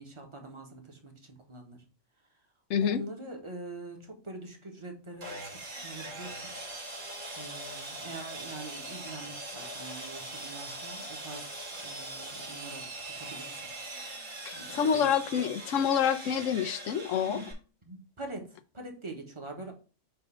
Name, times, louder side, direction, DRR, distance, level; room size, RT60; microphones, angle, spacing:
voice 1, 0.0-1.8 2.8-6.5 7.4-11.5 11.8-12.9 13.2-13.5 14.5-15.5 17.2-17.5 17.8-19.7, right 2 dB, 25° right, 1.2 m, -44 dB
voice 2, 2.7-3.0 14.5-17.4, left 8 dB, 90° left, 1.0 m, -27 dB
Sawing, 5.2-17.5, right 2 dB, 85° right, 2.5 m, -41 dB
6.9 x 2.7 x 5.5 m
omnidirectional pair, 1.3 m